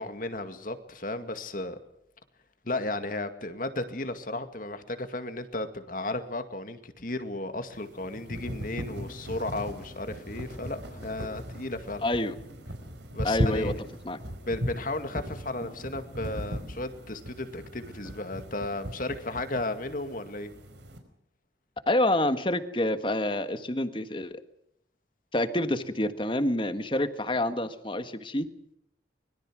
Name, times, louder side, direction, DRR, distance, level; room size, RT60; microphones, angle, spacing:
voice 1, 0.0-1.8 2.6-12.1 13.1-13.7 14.4-20.5, left 2 dB, 50° left, 8 dB, 2.1 m, -34 dB
sound 1, 7.7-21.0, equal, 80° right, 4.9 m, -37 dB
voice 2, 12.0-12.3 13.2-13.7 14.0-14.2 21.9-24.4 25.3-28.5, left 1 dB, 30° left, 10 dB, 1.5 m, -27 dB
25.0 x 22.0 x 6.3 m, 0.77 s
head